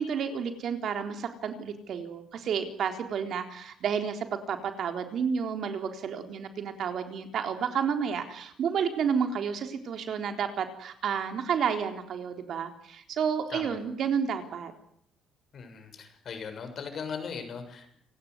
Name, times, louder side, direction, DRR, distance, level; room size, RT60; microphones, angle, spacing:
voice 1, 0.0-14.7, right 7 dB, 55° right, 6 dB, 3.8 m, -31 dB
voice 2, 15.5-18.0, left 6 dB, 45° left, 7 dB, 6.8 m, -39 dB
28.5 x 18.5 x 9.7 m, 0.69 s
cardioid pair, 145°, 0 cm